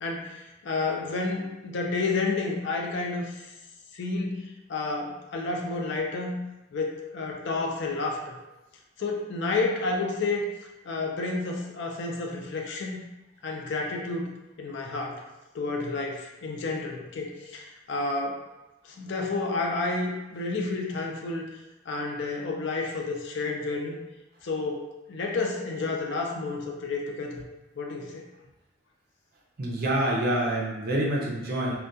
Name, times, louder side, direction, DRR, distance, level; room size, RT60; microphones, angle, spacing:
voice 1, 0.0-3.5 3.9-6.4 6.7-8.4 9.0-10.5 10.8-13.0 13.4-14.3 14.6-15.2 15.5-18.4 18.8-21.5 21.9-24.0 24.4-27.4 27.8-28.2, left 3 dB, 55° left, 1 dB, 0.4 m, -30 dB
voice 2, 29.6-31.8, right 1 dB, 45° right, -3 dB, 0.5 m, -26 dB
2.2 x 2.2 x 2.6 m, 0.98 s
head